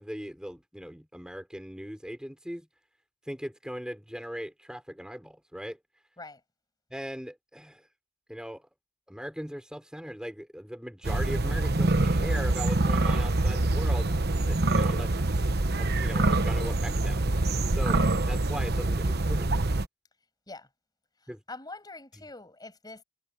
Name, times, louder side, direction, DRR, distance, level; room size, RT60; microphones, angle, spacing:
voice 1, 0.0-2.7 3.3-5.8 6.9-7.8 8.3-8.7 9.1-14.1 14.5-15.3 15.7-17.5 17.8-18.0 18.3-19.7 21.3-21.4 22.2-22.3, equal, 5° right, 5.8 m, -39 dB
sound 1, 11.0-19.8, right 2 dB, 50° right, 1.1 m, -25 dB
voice 2, 21.2-23.0, left 2 dB, 20° left, 6.9 m, -44 dB
head